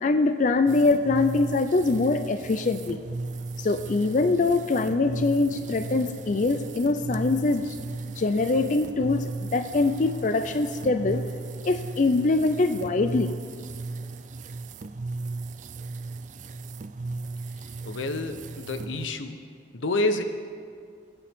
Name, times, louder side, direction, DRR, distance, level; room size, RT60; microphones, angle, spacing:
voice 1, 0.0-3.0 3.6-7.8 8.2-11.3 11.6-13.3, left 3 dB, 40° left, 9 dB, 0.4 m, -23 dB
sound 1, 0.7-19.1, right 3 dB, 40° right, 0.4 m, -36 dB
voice 2, 17.5-19.4 19.7-20.2, left 2 dB, 90° left, 8 dB, 0.9 m, -29 dB
23.0 x 9.1 x 3.6 m, 2.2 s
head